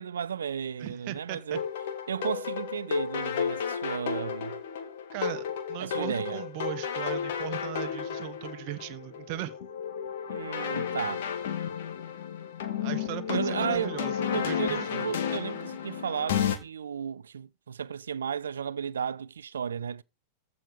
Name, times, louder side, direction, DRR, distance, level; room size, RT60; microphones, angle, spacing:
voice 1, 0.0-1.7 2.1-4.6 5.8-6.4 10.3-11.3 13.3-13.9 14.3-20.0, right 7 dB, 70° right, 0.4 m, -34 dB
voice 2, 0.8-1.6 5.1-9.6 12.8-15.1, right 13 dB, 45° right, 1.2 m, -38 dB
sound 1, 1.5-16.6, left 8 dB, 55° left, 1.7 m, -32 dB
14.5 x 5.2 x 5.0 m
figure-of-eight pair, 90°, 0 cm